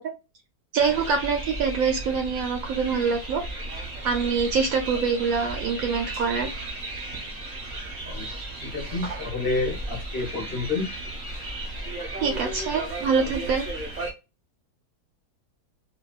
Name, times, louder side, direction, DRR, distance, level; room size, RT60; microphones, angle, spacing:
voice 1, 0.7-3.4 4.0-6.5 12.2-13.6, right 5 dB, 70° right, 4 dB, 0.9 m, -25 dB
sound 1, 0.8-14.1, right 2 dB, 35° right, 0.7 m, -35 dB
voice 2, 8.7-10.9, left 3 dB, 45° left, -2 dB, 0.8 m, -29 dB
2.7 x 2.2 x 2.3 m, 0.27 s
omnidirectional pair, 1.8 m